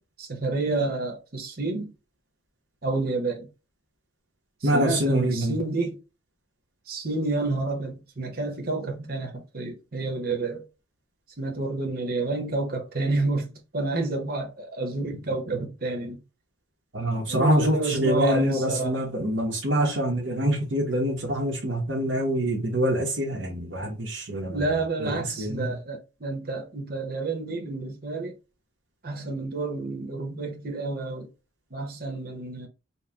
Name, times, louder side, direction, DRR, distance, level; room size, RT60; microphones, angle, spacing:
voice 1, 0.0-1.9 2.8-3.5 4.6-6.0 6.9-10.7 11.4-16.2 17.3-19.0 24.5-28.4 29.0-31.3 31.7-32.7, right 2 dB, 55° right, 1.0 m, -29 dB
voice 2, 4.6-5.6 16.9-24.6 25.0-25.7, equal, 90° right, 1.2 m, -25 dB
4.3 x 2.3 x 3.4 m
head